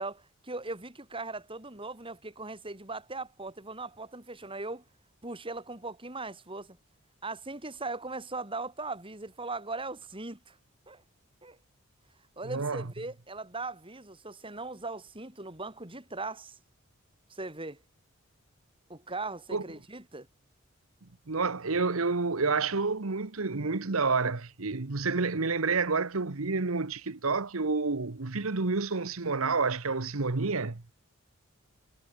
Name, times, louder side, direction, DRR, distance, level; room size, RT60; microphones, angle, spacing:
voice 1, 0.0-4.8 5.2-6.8 7.2-10.6 10.9-11.0 11.4-11.6 12.4-16.6 17.3-17.8 18.9-20.3, right 3 dB, 25° right, 5.3 m, -39 dB
voice 2, 12.4-12.9 19.5-19.6 21.3-30.8, right 4 dB, 75° right, 1.2 m, -29 dB
head